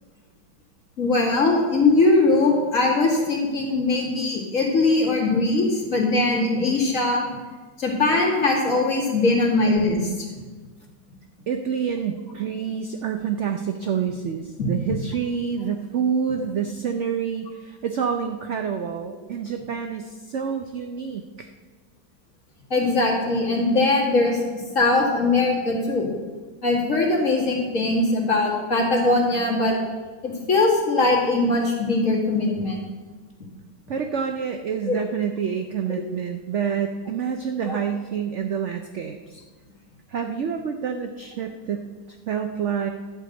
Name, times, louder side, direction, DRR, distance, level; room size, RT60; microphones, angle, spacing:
voice 1, 1.0-7.3 7.8-10.1 14.6-14.7 22.7-26.1 26.6-29.7 30.2-32.8 34.9-35.0 35.9-36.0 37.6-37.8, left 2 dB, 45° left, -2 dB, 2.4 m, -21 dB
voice 2, 11.5-21.5 33.9-39.4 40.1-41.9 42.3-42.9, right 7 dB, 75° right, 6 dB, 0.6 m, -27 dB
11.5 x 4.8 x 7.9 m, 1.4 s
omnidirectional pair, 2.0 m